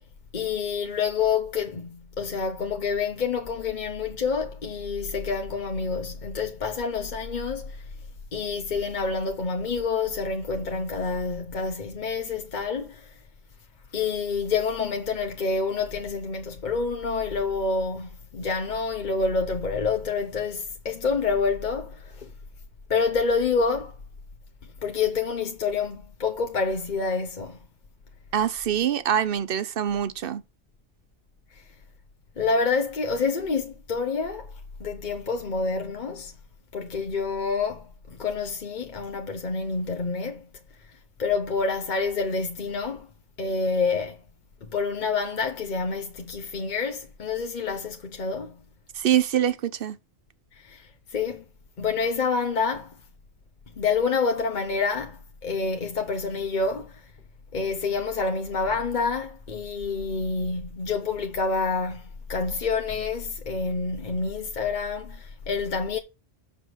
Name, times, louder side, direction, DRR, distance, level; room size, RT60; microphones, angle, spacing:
voice 1, 0.3-7.9 8.3-13.1 13.9-22.3 22.9-24.0 24.8-27.6 31.5-31.7 32.4-34.5 34.8-36.3 36.7-40.5 40.9-43.1 43.4-44.2 44.6-48.6 50.5-51.4 51.8-53.0 53.8-57.1 57.5-66.0, left 4 dB, 45° left, 0.9 m, -28 dB
voice 2, 28.3-30.4 49.0-50.0, right 10 dB, 60° right, 0.9 m, -24 dB
6.6 x 5.5 x 6.2 m
omnidirectional pair, 1.1 m